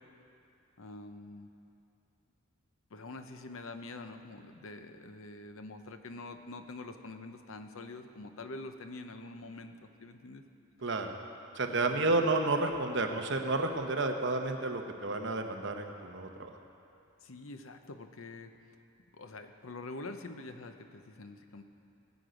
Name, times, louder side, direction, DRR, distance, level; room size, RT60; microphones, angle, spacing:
voice 1, 0.8-1.5 2.9-10.4 11.7-12.3 17.2-18.5 19.1-21.6, left 2 dB, 70° left, 7 dB, 0.8 m, -45 dB
voice 2, 10.8-11.1 11.5-16.5, right 2 dB, 55° right, 4 dB, 0.9 m, -31 dB
20.0 x 8.2 x 5.1 m, 2.7 s
head